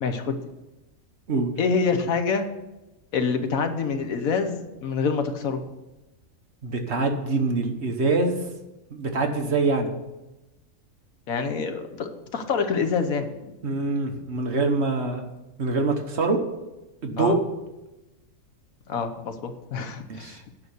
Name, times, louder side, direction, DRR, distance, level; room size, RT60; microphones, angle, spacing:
voice 1, 0.0-0.4 1.6-2.5 3.1-5.6 11.3-13.3 17.2-17.3 18.9-20.4, left 5 dB, 75° left, 7 dB, 1.4 m, -26 dB
voice 2, 6.6-8.4 8.9-9.9 13.6-15.3 15.6-16.4 17.0-17.4 20.1-20.4, right 3 dB, 50° right, 4 dB, 1.3 m, -24 dB
9.3 x 5.8 x 8.0 m, 1.0 s
omnidirectional pair, 1.5 m